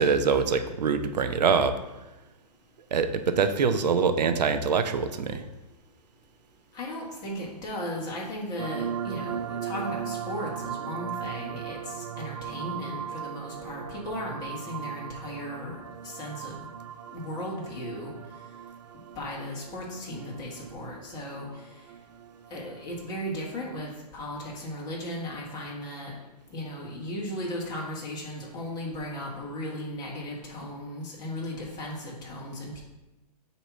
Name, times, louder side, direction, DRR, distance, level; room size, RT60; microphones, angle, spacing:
voice 1, 0.0-1.8 2.9-5.4, right 5 dB, 80° right, 9 dB, 0.7 m, -24 dB
voice 2, 6.7-15.8 16.0-16.7 17.1-18.1 19.1-21.7 22.5-26.1 26.5-32.8, left 1 dB, 20° left, -4 dB, 1.6 m, -36 dB
sound 1, 8.6-23.2, right 9 dB, 50° right, 0.4 m, -38 dB
8.2 x 3.0 x 5.9 m, 1.0 s
hypercardioid pair, 155°, 21 cm